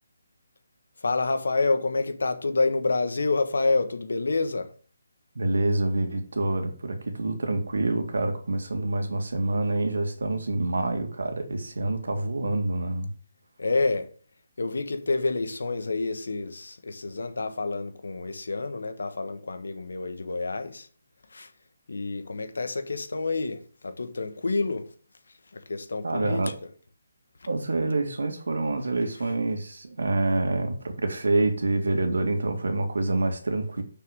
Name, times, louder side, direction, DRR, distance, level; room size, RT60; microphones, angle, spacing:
voice 1, 1.0-4.7 13.6-14.1 14.6-20.9 21.3-21.5 21.9-24.9 25.5-26.5, left 3 dB, 85° left, 1.5 m, -28 dB
voice 2, 5.4-13.1 26.0-26.5 27.5-33.8, right 2 dB, 90° right, 2.2 m, -27 dB
6.7 x 5.9 x 6.6 m
hypercardioid pair, 170°, 0 cm